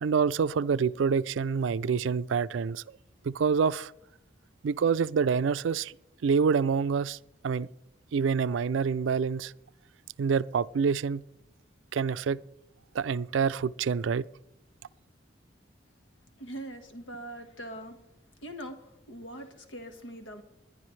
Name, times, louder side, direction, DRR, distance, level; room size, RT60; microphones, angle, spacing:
voice 1, 0.0-3.0 3.2-3.9 4.6-5.9 6.2-7.2 7.4-7.7 8.1-9.5 10.2-11.2 11.9-12.4 12.9-14.3, right 6 dB, 80° right, 0.4 m, -27 dB
voice 2, 16.4-18.0 18.4-20.4, right 1 dB, 85° left, 1.5 m, -42 dB
21.0 x 10.5 x 3.2 m
head